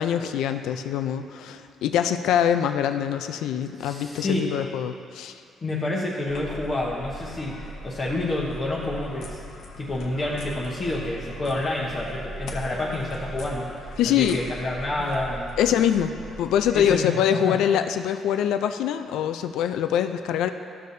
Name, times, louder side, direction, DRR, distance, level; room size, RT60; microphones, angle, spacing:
voice 1, 0.0-5.4 14.0-14.4 15.6-20.5, left 9 dB, 85° left, 9 dB, 0.4 m, -24 dB
voice 2, 3.8-4.5 5.6-9.4 9.8-13.7 14.0-15.5 16.7-17.1 17.3-17.6, left 2 dB, 30° left, -5 dB, 0.9 m, -28 dB
sound 1, 6.3-16.9, equal, 65° left, 1.0 m, -39 dB
13.5 x 6.6 x 2.7 m, 2.5 s
cardioid pair, 145°, 0 cm